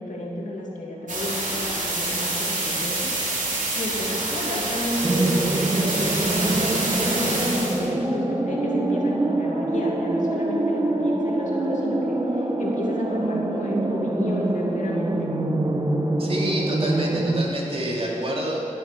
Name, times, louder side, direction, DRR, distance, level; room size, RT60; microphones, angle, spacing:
voice 1, 0.0-3.2 3.7-15.3, left 1 dB, 75° left, -2 dB, 2.7 m, -32 dB
sound 1, 1.1-7.8, right 2 dB, 85° right, 3.0 m, -27 dB
sound 2, 5.0-17.4, right 2 dB, 30° right, 1.3 m, -25 dB
voice 2, 16.2-18.6, right 1 dB, 50° right, -3 dB, 3.2 m, -28 dB
18.0 x 8.6 x 6.3 m, 2.8 s
wide cardioid pair, 65°, 13 cm